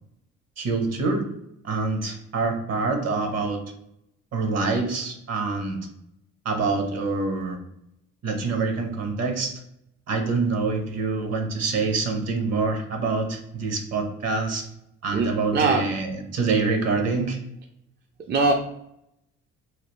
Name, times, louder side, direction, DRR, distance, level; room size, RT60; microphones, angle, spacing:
voice 1, 0.6-1.3 1.6-3.6 4.3-5.9 6.4-7.6 8.2-9.5 10.1-14.6 15.0-17.4, right 4 dB, 55° right, 4 dB, 0.8 m, -26 dB
voice 2, 15.1-15.9 18.3-18.5, right 3 dB, 35° right, 3 dB, 0.4 m, -22 dB
3.1 x 2.3 x 3.0 m, 0.80 s
cardioid pair, 90°, 30 cm